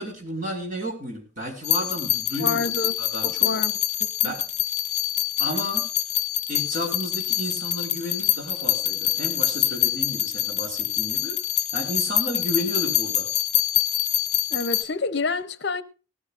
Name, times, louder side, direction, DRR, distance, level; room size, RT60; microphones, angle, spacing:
voice 1, 0.0-2.6 3.0-3.5 4.2-4.5 5.4-5.9 6.5-11.4 11.7-13.3, equal, 40° right, 5.1 m, -32 dB
sound 1, 1.6-14.8, left 14 dB, 35° left, 1.6 m, -25 dB
voice 2, 2.4-3.0 3.2-3.7 4.0-4.3 14.5-15.8, left 3 dB, 55° left, 0.7 m, -28 dB
18.5 x 13.5 x 2.5 m
head